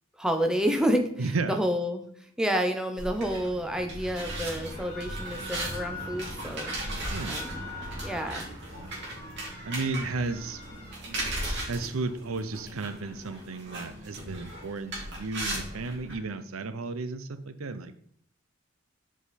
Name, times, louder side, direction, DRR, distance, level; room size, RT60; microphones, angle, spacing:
voice 1, 0.2-2.1 2.4-6.8 7.2-7.7 8.0-8.5, equal, 5° right, 5 dB, 0.7 m, -29 dB
voice 2, 1.2-1.6 7.1-7.5 9.7-10.6 11.7-17.9, right 3 dB, 90° right, 11 dB, 0.6 m, -33 dB
sound 1, 3.0-16.1, right 1 dB, 55° right, 2.5 m, -37 dB
sound 2, 4.6-6.3 7.0-8.3 8.7-11.1, left 3 dB, 20° left, 3.3 m, -44 dB
7.9 x 5.0 x 4.1 m, 0.65 s
head